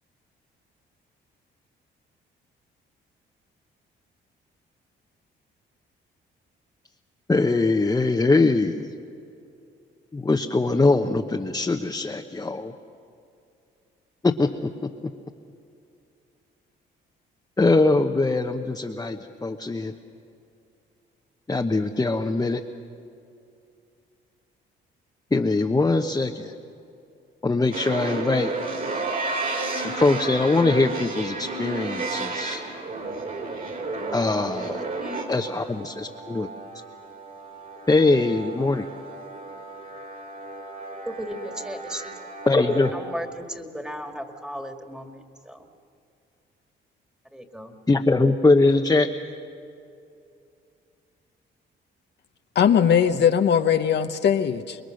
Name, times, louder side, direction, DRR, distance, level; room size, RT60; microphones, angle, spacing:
voice 1, 7.3-8.9 10.1-12.7 14.2-14.5 14.8-14.9 17.6-19.9 21.5-22.6 25.3-26.5 27.4-28.5 29.7-32.6 34.1-34.8 35.3-36.5 37.9-38.8 42.5-42.9 47.9-49.1, left 3 dB, 20° left, 2 dB, 1.0 m, -22 dB
sound 1, 27.7-42.9, right 3 dB, 45° right, 4.2 m, -33 dB
voice 2, 35.0-35.3 41.1-42.2 42.5-42.6 42.9-45.7 47.3-47.8, equal, 5° right, 4 dB, 2.1 m, -36 dB
voice 3, 52.5-54.8, left 8 dB, 60° left, 7 dB, 0.9 m, -20 dB
26.0 x 22.0 x 6.5 m, 2.6 s
cardioid pair, 90°, 20 cm